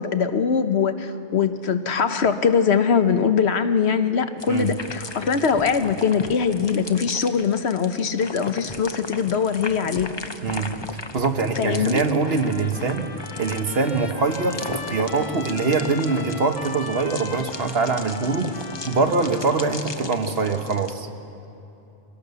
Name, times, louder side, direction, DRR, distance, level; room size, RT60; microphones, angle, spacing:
voice 1, 0.0-10.1 11.6-12.0, left 6 dB, 70° left, 9 dB, 1.2 m, -22 dB
sound 1, 4.4-20.9, left 3 dB, 25° left, 0.8 m, -37 dB
voice 2, 10.4-13.1 13.4-21.1, right 4 dB, 60° right, 6 dB, 1.5 m, -23 dB
Trumpet, 12.2-19.8, left 4 dB, 40° left, 1.3 m, -39 dB
23.5 x 17.5 x 7.0 m, 2.9 s
omnidirectional pair, 1.2 m